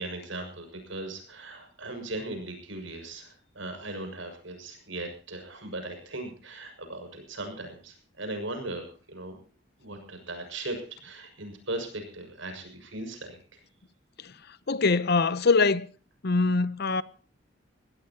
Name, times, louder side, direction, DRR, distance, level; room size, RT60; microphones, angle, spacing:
voice 1, 0.0-9.4 9.8-13.4, right 2 dB, 85° right, 6.5 m, -38 dB
voice 2, 14.7-15.9 16.2-17.0, left 4 dB, 55° left, 0.9 m, -23 dB
23.0 x 17.0 x 3.0 m
head